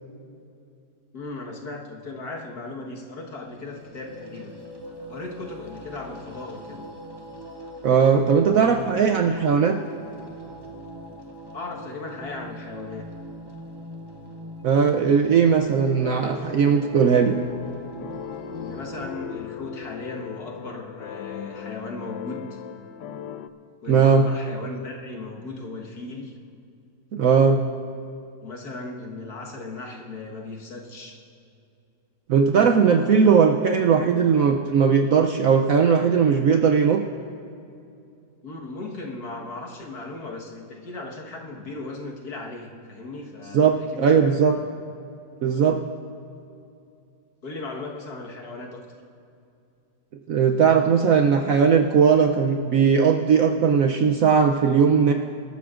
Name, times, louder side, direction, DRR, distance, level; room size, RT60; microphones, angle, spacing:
voice 1, 1.1-4.5 5.1-6.9 11.5-13.1 18.6-22.6 23.8-26.4 28.4-31.2 38.4-44.7 47.4-48.9, left 3 dB, 60° left, -1 dB, 1.9 m, -37 dB
sound 1, 3.3-19.1, right 1 dB, 15° right, 0.9 m, -41 dB
voice 2, 7.8-9.8 14.6-17.4 23.9-24.2 27.1-27.6 32.3-37.0 43.5-44.6 45.4-45.8 50.3-55.1, right 6 dB, 65° right, 4 dB, 0.8 m, -18 dB
sound 2, 16.0-23.5, left 10 dB, 80° left, 1.2 m, -38 dB
26.0 x 13.0 x 2.5 m, 2.6 s
omnidirectional pair, 1.9 m